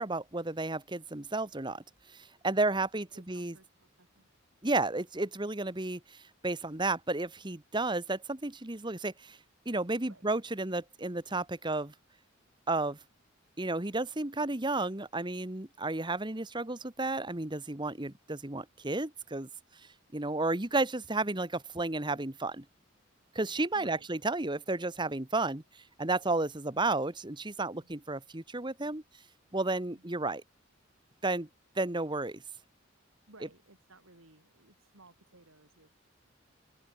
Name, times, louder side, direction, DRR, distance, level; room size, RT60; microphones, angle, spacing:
voice 1, 0.0-1.8 2.1-3.5 4.6-9.4 9.6-11.9 12.7-13.0 13.6-19.5 20.1-22.6 23.3-25.6 26.0-29.0 29.5-30.4 31.2-31.5 31.8-32.4, right 2 dB, 20° right, 1.4 m, -32 dB
voice 2, 3.1-4.3 10.1-10.3 23.7-24.1 27.7-27.9 29.9-30.1 33.3-35.9, right 2 dB, 85° right, 5.1 m, -59 dB
open air
head